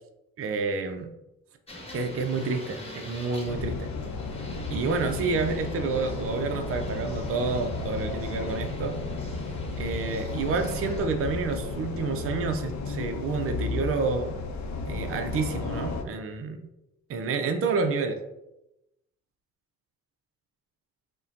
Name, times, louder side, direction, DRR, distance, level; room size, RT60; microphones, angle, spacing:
voice 1, 0.4-1.1 1.9-3.9 4.7-9.0 9.8-14.4 14.8-16.6 17.1-18.2, right 4 dB, 45° right, 5 dB, 0.5 m, -29 dB
sound 1, 1.7-11.1, left 1 dB, 20° left, 1.2 m, -43 dB
sound 2, 3.5-16.0, left 3 dB, 55° left, 0.7 m, -33 dB
4.9 x 2.2 x 2.7 m, 0.92 s
supercardioid pair, 55°, 33 cm